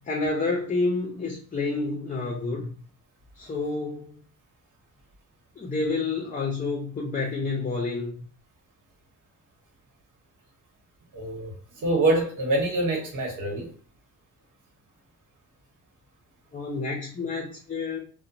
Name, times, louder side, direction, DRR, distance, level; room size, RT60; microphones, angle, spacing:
voice 1, 0.1-2.7 3.4-4.2 5.6-8.1 16.5-18.0, left 3 dB, 25° left, 0 dB, 0.5 m, -29 dB
voice 2, 11.1-11.5 11.8-13.7, right 2 dB, 80° right, 1 dB, 1.1 m, -25 dB
2.8 x 2.1 x 2.6 m, 0.42 s
cardioid pair, 130°, 31 cm